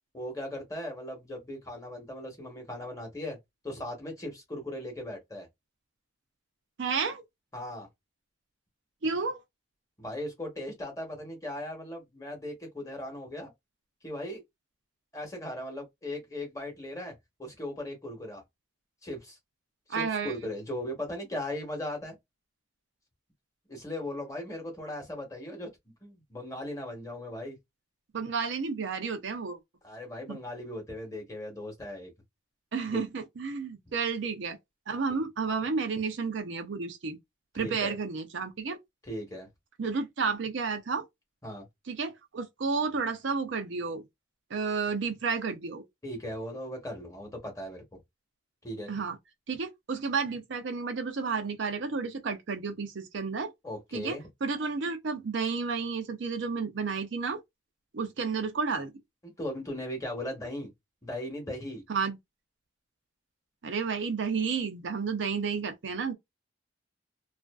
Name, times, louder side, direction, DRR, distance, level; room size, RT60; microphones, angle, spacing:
voice 1, 0.1-3.4 3.6-5.5 7.5-7.9 10.0-13.5 14.0-14.4 15.1-18.4 19.0-19.4 19.9-22.2 23.7-25.7 26.0-27.6 29.8-32.1 32.9-33.0 37.5-37.9 39.0-39.5 41.4-41.7 46.0-48.0 48.6-48.9 53.6-54.2 59.2-60.7 61.0-61.8, left 1 dB, 15° left, 1.0 m, -38 dB
voice 2, 6.8-7.2 9.0-9.4 19.9-20.3 28.1-29.6 30.3-30.4 32.7-34.6 34.9-37.2 37.5-38.8 39.8-41.0 41.9-44.0 44.5-45.8 48.9-49.2 49.5-53.5 53.9-57.4 57.9-58.9 61.9-62.2 63.6-66.1, right 5 dB, 60° right, 0.5 m, -31 dB
2.5 x 2.4 x 2.3 m
head